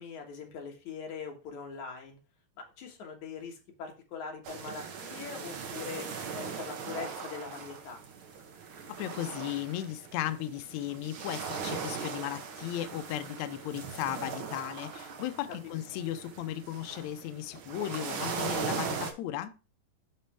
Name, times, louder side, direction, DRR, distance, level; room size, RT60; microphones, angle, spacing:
voice 1, 0.0-2.2 2.6-6.1 6.3-8.0 15.6-15.7, left 6 dB, 60° left, 2.7 m, -42 dB
sound 1, 4.4-19.1, right 6 dB, 85° right, 1.1 m, -39 dB
voice 2, 9.0-19.5, left 12 dB, 85° left, 1.6 m, -36 dB
11.0 x 4.1 x 3.4 m
omnidirectional pair, 3.9 m